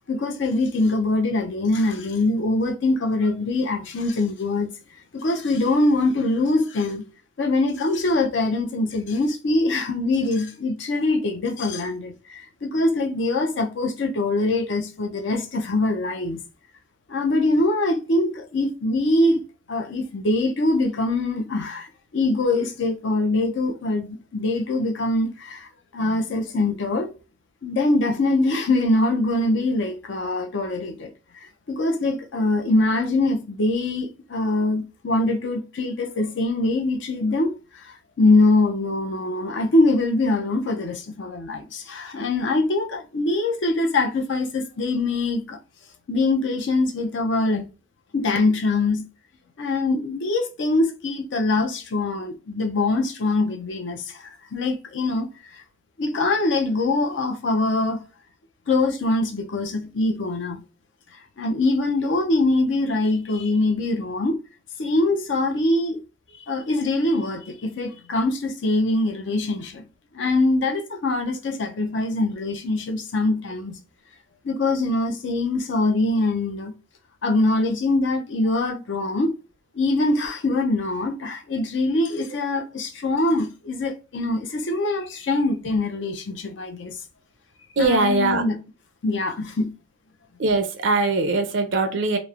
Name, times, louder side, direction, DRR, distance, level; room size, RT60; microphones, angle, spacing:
voice 1, 0.1-4.7 5.1-7.0 7.4-16.4 17.1-19.4 19.7-21.9 22.1-25.7 25.9-27.1 27.6-37.5 37.8-45.6 46.1-47.7 48.1-49.0 49.6-55.3 56.0-58.0 58.7-60.6 61.4-64.4 64.8-66.0 66.4-69.8 70.1-73.8 74.4-76.7 77.2-79.3 79.7-87.0 87.8-88.6 89.0-89.7, left 2 dB, 65° left, 0.5 m, -23 dB
voice 2, 87.8-88.4 90.4-92.2, right 3 dB, 65° right, 0.5 m, -21 dB
2.9 x 2.0 x 2.4 m
head